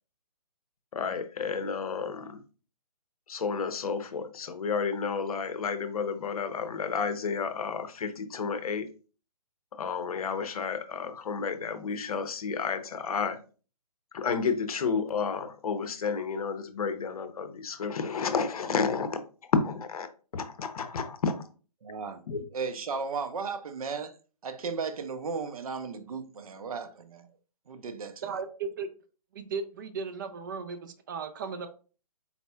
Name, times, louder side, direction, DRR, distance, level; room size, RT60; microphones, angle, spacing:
voice 1, 0.9-2.4 3.3-8.9 9.8-13.4 14.1-19.2 19.5-20.1 20.3-21.4 22.3-22.4, left 5 dB, 65° left, 0.8 m, -31 dB
voice 2, 21.8-22.2 22.5-24.1 24.4-27.3 27.7-28.3, right 5 dB, 65° right, 0.7 m, -35 dB
voice 3, 28.2-28.9 29.3-31.7, right 5 dB, 30° right, 0.4 m, -36 dB
4.2 x 4.2 x 2.3 m
hypercardioid pair, 150°, 20 cm